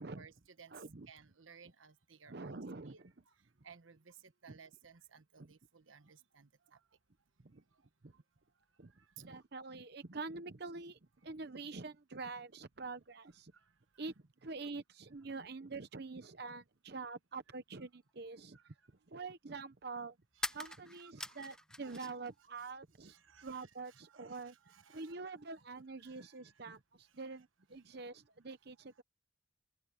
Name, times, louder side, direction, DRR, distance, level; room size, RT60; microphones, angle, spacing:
voice 1, 0.1-0.7 1.1-2.6 2.9-3.0 3.6-4.1 4.4-6.5 9.3-9.4 18.5-18.6 20.4-22.2 23.0-25.2 26.0-26.3, right 6 dB, 90° right, 1.3 m, -60 dB
voice 2, 0.7-1.1 2.3-3.0 4.5-4.6 5.4-5.5 7.4-7.6 8.0-8.1 8.8-8.9 9.2-13.5 14.0-14.1 14.4-18.7 19.1-20.2 20.5-24.6 24.9-29.0, right 3 dB, 55° right, 0.8 m, -46 dB
sound 1, 18.1-18.2 20.3-22.3 22.6-23.5, left 1 dB, 5° left, 0.5 m, -44 dB
open air
head